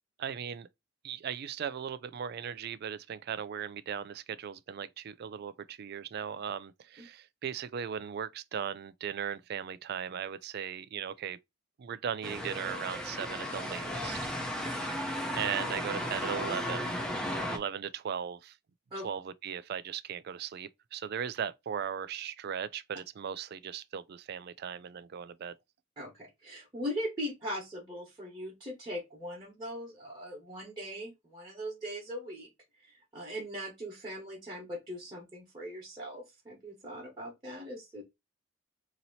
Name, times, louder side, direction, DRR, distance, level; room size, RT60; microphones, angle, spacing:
voice 1, 0.2-0.7 1.0-11.4 11.8-14.3 15.3-17.0 17.5-18.6 19.0-25.5, right 8 dB, 50° right, 0.3 m, -38 dB
sound 1, 12.2-17.6, equal, 5° left, 0.6 m, -35 dB
voice 2, 14.4-15.3 17.3-17.5 18.9-19.1 26.0-32.5 32.8-38.0, equal, 20° right, 1.2 m, -40 dB
2.9 x 2.7 x 4.0 m
head